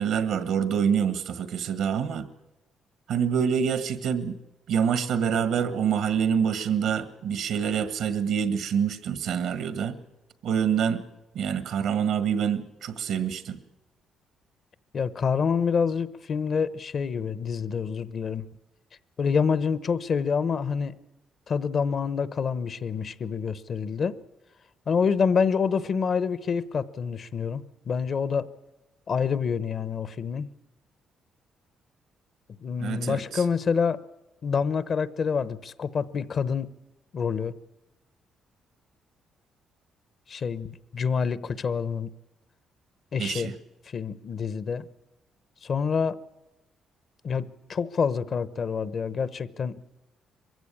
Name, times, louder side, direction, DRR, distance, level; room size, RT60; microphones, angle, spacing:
voice 1, 0.0-2.3 3.1-4.4 4.7-10.0 10.4-11.0 11.3-13.6 32.8-33.4 43.2-43.5, right 7 dB, 80° right, 1.5 m, -26 dB
voice 2, 14.9-18.4 19.2-20.9 21.5-24.2 24.9-28.5 29.1-30.5 32.6-34.0 34.4-36.7 37.1-37.5 40.3-42.1 43.1-43.5 43.9-44.9 45.6-46.2 47.2-49.8, left 6 dB, 50° left, 0.8 m, -27 dB
22.5 x 15.5 x 8.5 m
cardioid pair, 90°, 0 cm